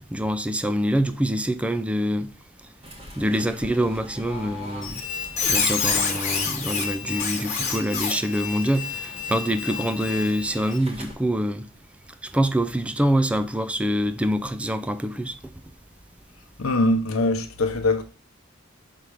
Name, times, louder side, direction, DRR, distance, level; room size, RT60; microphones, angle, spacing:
voice 1, 0.1-2.3 3.2-5.0 5.5-11.7 12.3-15.5, equal, 5° right, 0.3 m, -25 dB
Fowl / Bird, 2.8-11.1, left 1 dB, 30° right, 1.5 m, -43 dB
Squeak, 4.8-10.8, left 5 dB, 35° left, 1.2 m, -28 dB
voice 2, 16.6-18.0, left 2 dB, 85° left, 0.9 m, -22 dB
5.7 x 3.4 x 4.9 m
head